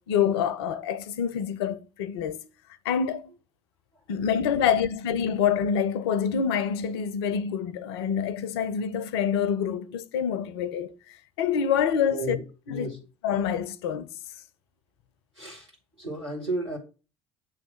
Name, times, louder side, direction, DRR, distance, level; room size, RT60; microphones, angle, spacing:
voice 1, 0.1-2.5 2.8-3.3 4.1-12.4 12.7-12.9 13.2-14.1, left 7 dB, 65° left, 0.5 m, -26 dB
voice 2, 12.1-13.1 15.3-16.8, right 1 dB, 90° right, 2.1 m, -34 dB
7.4 x 3.2 x 5.8 m
figure-of-eight pair, 55°, 14 cm